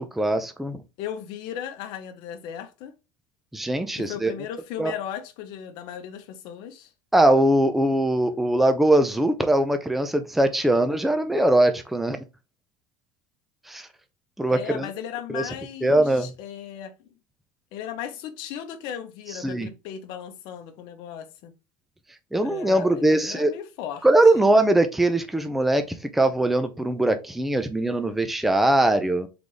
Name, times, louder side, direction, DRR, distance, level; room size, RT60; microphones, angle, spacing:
voice 1, 0.0-0.8 3.5-4.3 4.8-4.9 7.1-12.2 13.7-13.9 14.4-14.9 15.3-15.4 15.8-16.3 19.4-19.7 22.3-23.5 24.0-29.3, right 1 dB, ahead, 0.4 m, -21 dB
voice 2, 1.0-2.9 4.0-6.9 10.7-10.9 14.5-17.1 17.7-21.5 22.4-24.1 24.3-24.4, left 9 dB, 50° left, 0.8 m, -36 dB
3.9 x 3.4 x 3.1 m
cardioid pair, 170°, 10 cm